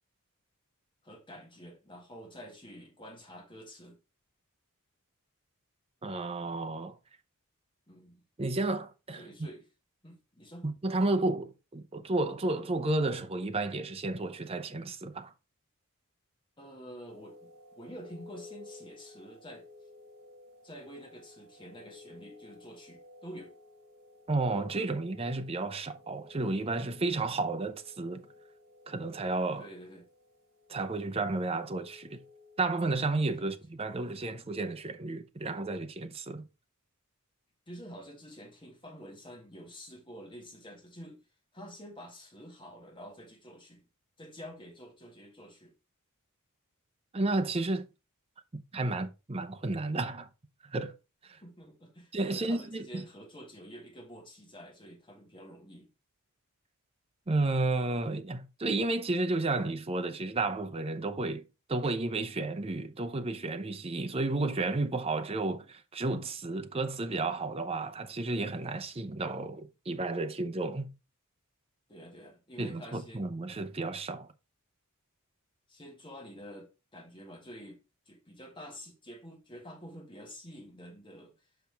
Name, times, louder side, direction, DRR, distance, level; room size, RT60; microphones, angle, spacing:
voice 1, 1.0-4.0 7.9-8.2 9.2-9.7 10.0-10.7 16.6-19.7 20.6-23.5 29.6-30.1 33.4-33.5 37.7-41.2 41.5-43.9 44.2-45.7 51.4-55.9 71.9-73.3 75.7-77.8 78.1-81.3, equal, 20° left, 1.9 m, -48 dB
voice 2, 6.0-7.0 8.4-9.5 10.6-15.3 24.3-28.3 28.9-29.7 30.7-32.2 32.6-36.4 47.1-47.9 48.5-50.3 50.6-50.9 51.3-51.4 52.1-53.0 57.3-61.4 61.7-70.9 72.6-74.3, right 2 dB, 25° right, 0.7 m, -32 dB
sound 1, 17.1-33.4, left 2 dB, 65° right, 3.4 m, -55 dB
5.8 x 5.7 x 3.4 m
head